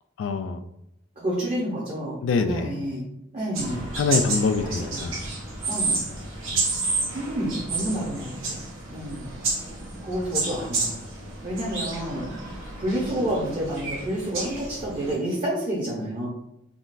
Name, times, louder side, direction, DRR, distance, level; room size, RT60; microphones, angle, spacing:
voice 1, 0.2-0.6 2.2-2.7 4.0-5.2 6.5-6.6, left 4 dB, 65° left, 9 dB, 0.3 m, -24 dB
voice 2, 1.2-3.0 3.3-3.9 4.6-5.1 5.7-6.0 7.1-8.6 8.9-9.3 10.0-10.9 11.4-12.3 12.8-16.3, right 1 dB, 35° right, -6 dB, 0.8 m, -29 dB
sound 1, 3.5-15.1, right 3 dB, 85° right, 1.1 m, -30 dB
3.7 x 2.4 x 2.5 m, 0.82 s
head